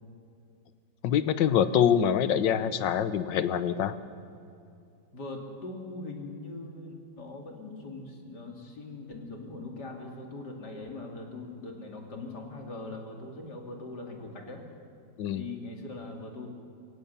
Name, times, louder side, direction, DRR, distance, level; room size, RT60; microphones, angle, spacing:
voice 1, 1.0-4.0 15.2-15.4, left 8 dB, 80° left, 13 dB, 1.6 m, -25 dB
voice 2, 5.1-14.6 15.3-16.5, left 2 dB, 65° left, 1 dB, 3.2 m, -41 dB
24.0 x 17.0 x 6.9 m, 2.5 s
omnidirectional pair, 2.0 m